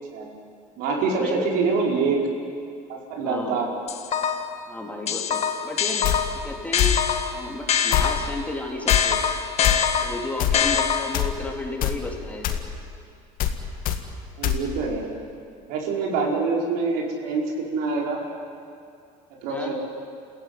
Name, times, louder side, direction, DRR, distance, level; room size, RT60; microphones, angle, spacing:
voice 1, 0.8-2.3 2.9-3.7 14.4-15.1 15.7-18.2 19.4-19.7, right 4 dB, 80° right, -1 dB, 5.4 m, -25 dB
voice 2, 3.2-3.7 4.7-6.0 6.4-7.0 7.3-9.2 10.0-12.5 19.5-19.7, left 2 dB, 10° left, 0 dB, 3.6 m, -33 dB
sound 1, 3.9-4.6 5.1-8.4 8.9-11.3, left 7 dB, 45° left, 1.7 m, -24 dB
sound 2, 6.0-6.2 6.8-7.0 7.9-8.1 8.9-9.0 9.6-9.8 10.4-10.6 11.1-11.3 11.8-12.0 12.4-12.6 13.4-13.6 13.8-14.0 14.4-14.6, left 11 dB, 65° left, 2.1 m, -22 dB
29.0 x 16.0 x 9.6 m, 2.4 s
cardioid pair, 125°, 16 cm